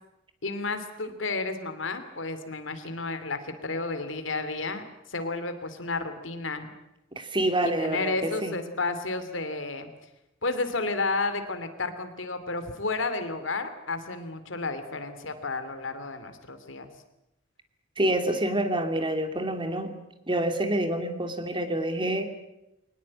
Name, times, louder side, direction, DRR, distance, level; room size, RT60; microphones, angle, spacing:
voice 1, 0.4-4.8 5.1-6.7 7.6-9.9 10.4-16.9, left 3 dB, 90° left, 9 dB, 2.8 m, -32 dB
voice 2, 7.1-8.5 18.0-19.9 20.3-22.3, right 1 dB, 25° right, 7 dB, 2.6 m, -27 dB
23.5 x 19.5 x 8.8 m, 0.90 s
head